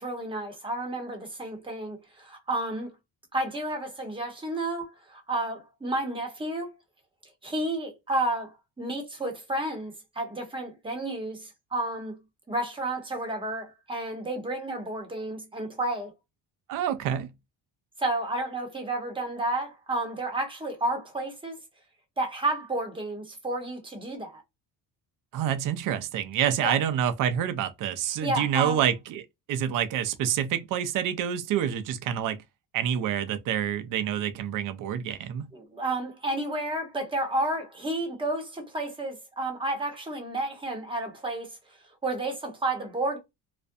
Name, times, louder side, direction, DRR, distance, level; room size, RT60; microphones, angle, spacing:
voice 1, 0.0-2.9 3.3-6.7 7.4-8.5 8.8-12.2 12.5-16.1 18.0-21.6 22.2-24.4 26.6-26.7 28.2-28.8 35.5-41.5 42.0-43.2, right 2 dB, 10° right, 0.9 m, -31 dB
voice 2, 16.7-17.3 25.3-32.4 32.7-35.5, right 9 dB, 50° right, 0.5 m, -27 dB
2.4 x 2.1 x 2.6 m
cardioid pair, 125°, 42 cm